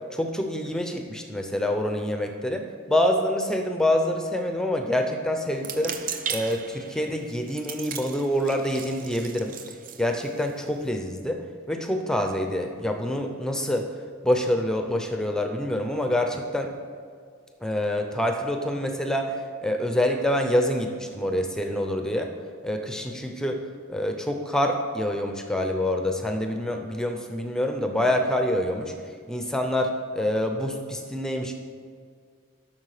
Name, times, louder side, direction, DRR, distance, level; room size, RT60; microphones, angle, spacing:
voice 1, 0.1-6.0 6.3-11.4 11.7-13.9 14.2-16.7 17.6-19.4 19.6-22.3 22.6-23.6 23.9-28.9 29.3-31.5, left 1 dB, 5° left, 4 dB, 0.6 m, -26 dB
sound 1, 5.5-10.9, right 7 dB, 40° right, 0.5 m, -37 dB
11.5 x 6.3 x 4.9 m, 2.1 s
head